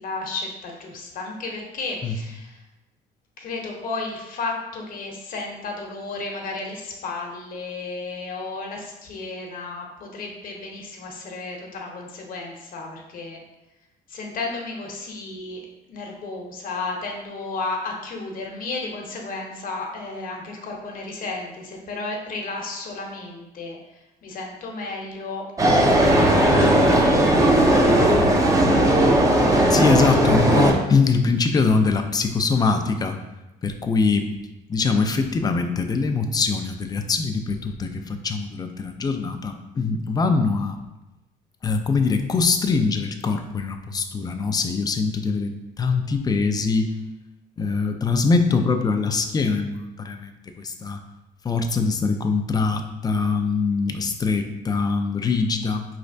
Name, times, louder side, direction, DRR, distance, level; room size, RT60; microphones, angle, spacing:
voice 1, 0.0-2.6 3.4-13.4 14.1-15.6 15.9-23.8 24.2-25.5 25.8-27.2 27.6-28.4, left 3 dB, 55° left, 1 dB, 0.9 m, -33 dB
sound 1, 25.6-30.7, right 1 dB, 20° right, 0.6 m, -17 dB
voice 2, 28.0-28.3 29.7-33.2 33.6-34.3 34.7-40.8 41.6-46.9 47.6-51.0 51.4-55.8, left 4 dB, 25° left, 6 dB, 0.4 m, -23 dB
4.8 x 3.3 x 2.6 m, 0.96 s
cardioid pair, 110°, 17 cm